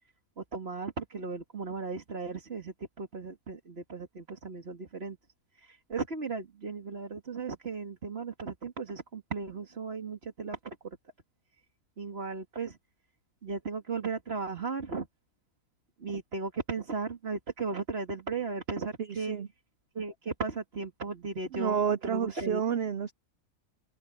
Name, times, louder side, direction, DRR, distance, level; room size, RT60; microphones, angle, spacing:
voice 1, 0.4-5.2 5.6-11.0 12.0-12.8 13.4-15.1 16.0-19.4 19.9-22.6, right 4 dB, 40° right, 2.2 m, -36 dB
voice 2, 19.0-19.5 21.5-23.1, right 7 dB, 75° right, 0.5 m, -30 dB
open air
omnidirectional pair, 1.7 m